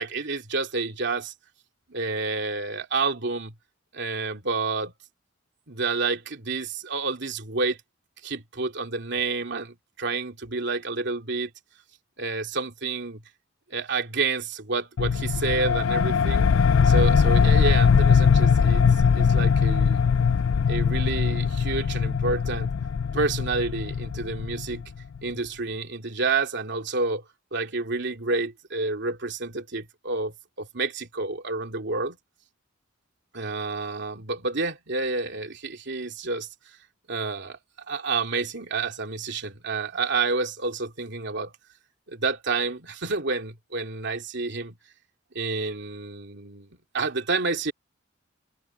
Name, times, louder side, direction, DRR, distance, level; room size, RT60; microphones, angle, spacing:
voice 1, 0.0-1.3 1.9-3.5 3.9-4.9 5.7-7.8 8.2-11.5 12.2-13.2 13.7-16.5 16.8-18.9 19.1-20.0 20.7-22.7 23.1-24.8 25.2-27.2 27.5-32.2 33.3-36.5 37.1-37.6 37.9-41.5 42.1-44.8 45.3-47.7, right 3 dB, 60° right, 2.8 m, -29 dB
sound 1, 15.0-25.2, left 6 dB, 85° left, 0.4 m, -21 dB
open air
head